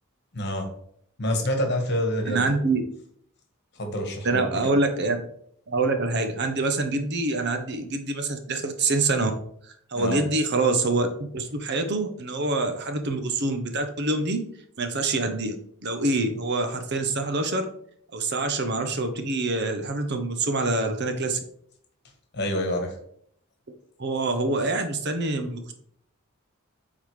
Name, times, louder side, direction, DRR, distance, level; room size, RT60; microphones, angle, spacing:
voice 1, 0.3-0.7 1.2-2.4 3.7-4.7 9.9-10.2 22.3-23.0, left 1 dB, 50° left, 3 dB, 1.3 m, -27 dB
voice 2, 2.3-2.8 4.2-5.2 5.7-9.3 9.9-14.4 14.8-15.6 15.8-17.7 18.1-21.4 24.0-25.7, right 2 dB, 55° right, 6 dB, 0.8 m, -25 dB
8.5 x 3.8 x 3.2 m, 0.66 s
head